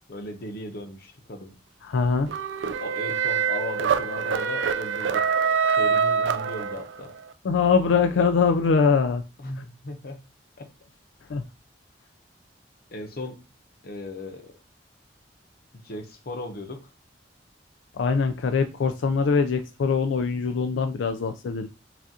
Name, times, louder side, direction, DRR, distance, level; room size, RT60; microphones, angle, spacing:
voice 1, 0.1-1.6 2.8-5.2 5.8-7.1 9.4-10.2 10.6-10.7 12.9-13.4 13.8-14.6 15.8-16.9, left 1 dB, 55° left, 6 dB, 0.8 m, -37 dB
voice 2, 1.8-2.3 7.4-9.2 9.6-9.7 11.3-11.4 17.9-21.7, left 5 dB, 90° left, 7 dB, 0.4 m, -23 dB
sound 1, 2.3-7.1, right 6 dB, 80° right, 0.4 m, -25 dB
5.9 x 2.4 x 2.7 m, 0.29 s
head